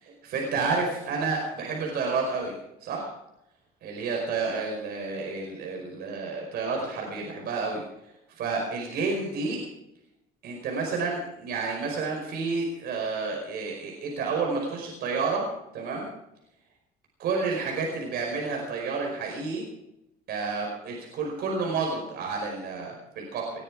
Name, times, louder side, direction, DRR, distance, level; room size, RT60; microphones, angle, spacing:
voice 1, 0.0-3.1 3.8-7.8 8.4-9.6 10.4-16.1 17.2-19.7 20.3-23.5, right 4 dB, 70° right, 0 dB, 5.1 m, -30 dB
20.5 x 13.5 x 4.9 m, 0.85 s
cardioid pair, 110°, 17 cm